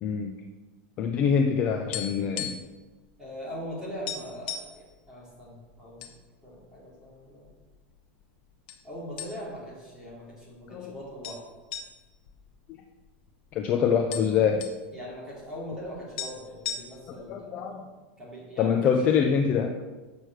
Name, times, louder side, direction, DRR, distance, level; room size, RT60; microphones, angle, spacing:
voice 1, 0.0-0.3 1.0-2.6 10.7-10.9 13.5-14.7 17.3-17.8 18.6-19.8, left 7 dB, 20° left, 5 dB, 0.4 m, -25 dB
sound 1, 1.9-2.8 3.1-3.3 3.6-3.7 4.1-4.8 5.5-6.2 6.5-6.7 7.4-8.0 8.7-8.8 9.2-9.7 10.1-10.2 11.2-13.3 13.6-13.7 13.9-14.8 15.8-15.9 16.2-17.2, left 8 dB, 45° left, 1.0 m, -37 dB
voice 2, 3.2-6.1 6.4-7.5 8.8-11.4 14.9-17.9 18.2-19.1, equal, 10° right, -7 dB, 3.0 m, -41 dB
8.1 x 6.6 x 6.1 m, 1.3 s
supercardioid pair, 180°, 7 cm